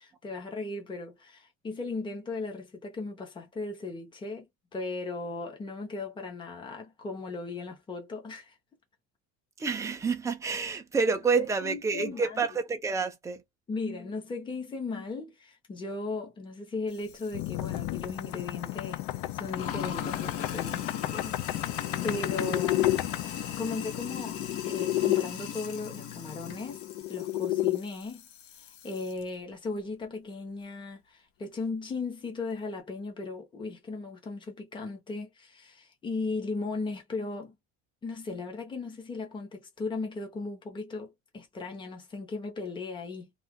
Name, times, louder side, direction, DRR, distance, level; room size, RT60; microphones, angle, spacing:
voice 1, 0.0-4.5 4.7-8.5 11.4-12.4 13.7-19.0 19.3-21.7 22.0-22.9 23.6-24.4 24.6-28.2 28.8-37.5 38.0-43.3, left 3 dB, 15° left, 0.9 m, -37 dB
voice 2, 9.6-13.4, right 4 dB, 10° right, 0.5 m, -28 dB
Sink (filling or washing), 16.9-29.2, left 9 dB, 40° left, 0.6 m, -39 dB
sound 1, 17.3-25.2 26.5-27.8, left 15 dB, 85° left, 0.6 m, -31 dB
2.7 x 2.5 x 3.6 m
cardioid pair, 170°, 35 cm